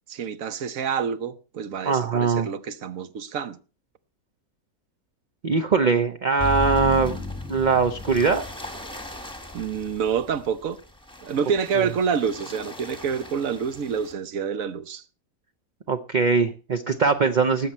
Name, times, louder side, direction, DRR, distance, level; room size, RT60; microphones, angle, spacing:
voice 1, 0.1-3.6 9.5-10.8 11.2-15.0, right 6 dB, 65° right, 1.2 m, -27 dB
voice 2, 1.8-2.5 5.4-7.2 7.5-8.4 11.7-11.9 15.9-17.7, right 5 dB, 45° right, 0.6 m, -21 dB
sound 1, 6.4-14.1, left 2 dB, 5° left, 1.2 m, -35 dB
19.0 x 7.8 x 4.3 m
omnidirectional pair, 1.6 m